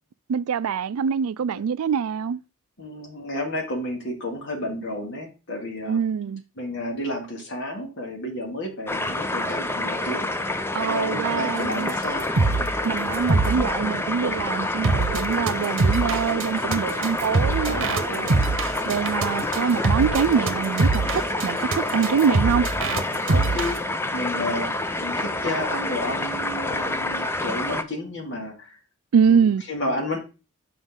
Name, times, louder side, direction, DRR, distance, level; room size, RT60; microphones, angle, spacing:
voice 1, 0.3-2.4 5.9-6.4 10.7-11.9 12.8-18.4 18.9-22.7 29.1-29.6, right 7 dB, 80° right, 0.4 m, -24 dB
voice 2, 2.8-6.0 6.6-10.3 10.8-12.3 17.7-18.5 22.0-22.4 23.3-24.7 25.0-28.8 29.3-30.2, left 1 dB, 60° left, 2.4 m, -31 dB
sound 1, 8.9-27.8, left 2 dB, 10° left, 0.5 m, -28 dB
sound 2, 11.9-12.0 12.2-12.7 13.1-23.8, right 3 dB, 65° right, 0.9 m, -24 dB
8.0 x 5.1 x 3.7 m
head